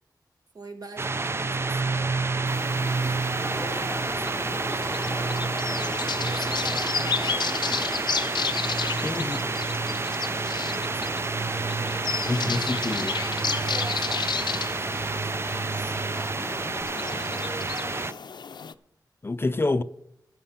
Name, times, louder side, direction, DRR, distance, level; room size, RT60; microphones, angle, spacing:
voice 1, 0.5-2.0 3.0-5.8 6.3-8.1 9.2-9.8 10.0-12.4 13.5-16.4 17.1-18.2, right 2 dB, 55° right, 1.9 m, -43 dB
sound 1, 1.0-18.1, right 3 dB, 35° right, 0.4 m, -29 dB
sound 2, 2.5-18.7, left 6 dB, 75° left, 0.6 m, -33 dB
Aircraft, 3.4-16.8, right 1 dB, 20° right, 1.2 m, -40 dB
voice 2, 9.0-9.4 12.3-13.2 19.2-19.8, left 2 dB, 30° left, 0.5 m, -27 dB
14.5 x 6.8 x 5.8 m
wide cardioid pair, 85°, 8 cm